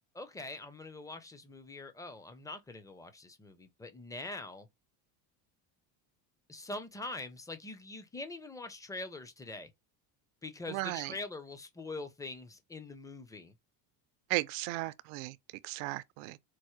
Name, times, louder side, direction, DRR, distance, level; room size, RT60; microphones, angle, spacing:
voice 1, 0.1-4.7 6.5-9.7 10.4-13.5, left 2 dB, 5° left, 0.5 m, -43 dB
voice 2, 10.7-11.1 14.3-15.4 15.6-16.4, right 19 dB, 70° right, 0.5 m, -35 dB
4.5 x 2.1 x 3.0 m
supercardioid pair, 100°, 48 cm